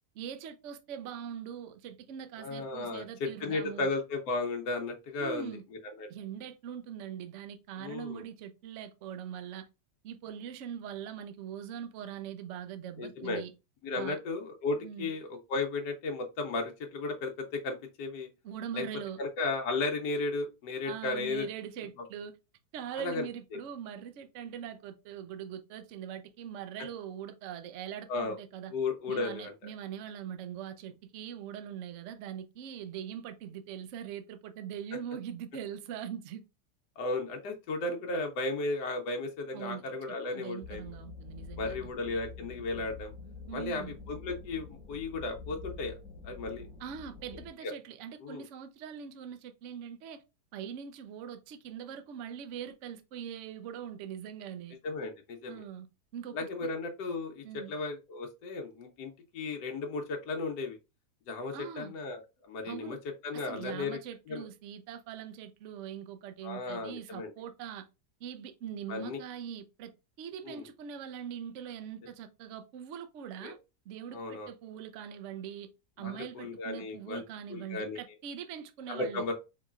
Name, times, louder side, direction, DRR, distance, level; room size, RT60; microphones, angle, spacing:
voice 1, 0.1-3.9 5.2-5.6 6.1-9.7 10.0-13.5 13.9-14.2 14.8-15.1 18.4-19.2 20.8-22.4 22.7-28.7 29.1-36.4 39.5-41.9 43.5-44.0 46.8-50.2 50.5-54.8 55.5-55.9 56.1-56.7 57.4-57.7 61.5-61.9 62.7-63.0 63.3-67.8 68.2-69.9 70.2-73.6 73.9-75.7 76.0-79.3, right 9 dB, 65° right, 0.7 m, -42 dB
voice 2, 2.4-5.5 6.0-6.1 7.8-8.2 13.0-13.4 13.8-18.3 18.7-18.8 19.2-21.4 23.0-23.3 23.5-23.6 28.1-28.4 28.7-29.5 37.0-40.8 41.6-43.1 43.5-45.9 46.2-46.6 47.6-47.7 48.2-48.4 54.8-55.6 56.3-60.8 61.3-62.2 62.5-63.0 63.2-63.9 64.3-64.4 66.4-67.3 68.9-69.2 70.4-70.6 73.4-73.6 74.1-74.5 76.0-77.2 77.5-78.0 78.9-79.3, left 3 dB, 80° left, 1.3 m, -35 dB
sound 1, 40.6-47.5, left 4 dB, 15° right, 1.5 m, -46 dB
4.7 x 3.0 x 2.3 m
omnidirectional pair, 1.8 m